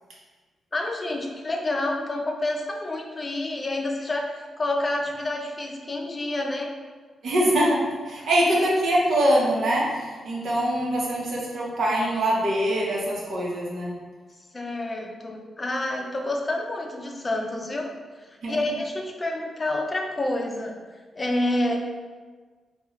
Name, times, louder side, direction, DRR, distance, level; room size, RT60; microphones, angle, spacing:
voice 1, 0.7-6.7 14.5-17.9 18.5-20.7 21.1-21.8, left 1 dB, 35° left, 1 dB, 0.5 m, -28 dB
voice 2, 7.2-13.9 18.4-18.6, right 1 dB, 75° right, -4 dB, 0.9 m, -23 dB
3.6 x 2.3 x 3.0 m, 1.4 s
cardioid pair, 65°, 0 cm